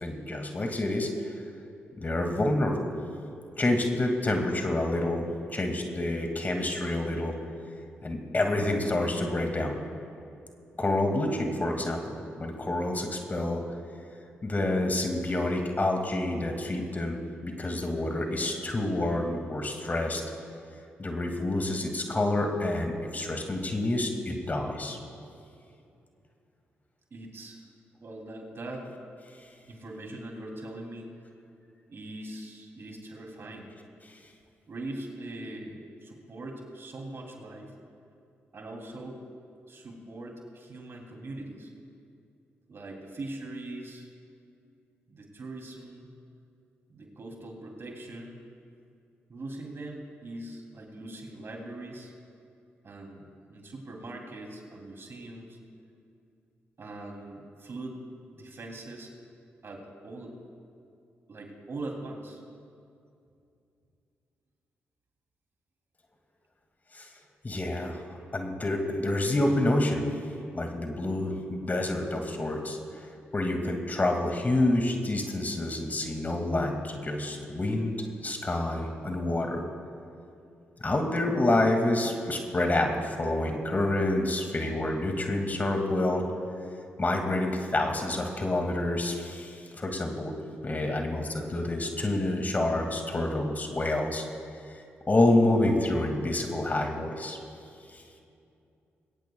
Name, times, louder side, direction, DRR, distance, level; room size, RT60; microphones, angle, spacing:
voice 1, 0.0-1.4 2.0-2.9 3.5-7.3 8.0-9.8 10.8-13.6 14.4-20.2 21.0-25.0 66.9-67.1 67.4-70.1 70.5-78.0 78.2-79.6 80.8-86.2 87.0-90.3 90.6-94.2 95.1-97.4 97.9-98.0, left 1 dB, 35° left, 3 dB, 2.3 m, -28 dB
voice 2, 27.1-27.6 28.0-28.9 29.7-31.2 31.9-33.7 34.7-37.7 38.5-39.2 39.7-41.7 42.7-44.1 45.1-46.1 46.9-48.4 49.3-52.1 52.8-55.6 56.8-58.0 58.3-59.1 59.6-60.4 61.3-62.4, right 2 dB, 50° right, 1 dB, 3.1 m, -41 dB
22.0 x 17.5 x 2.4 m, 2.5 s
hypercardioid pair, 40°, 5 cm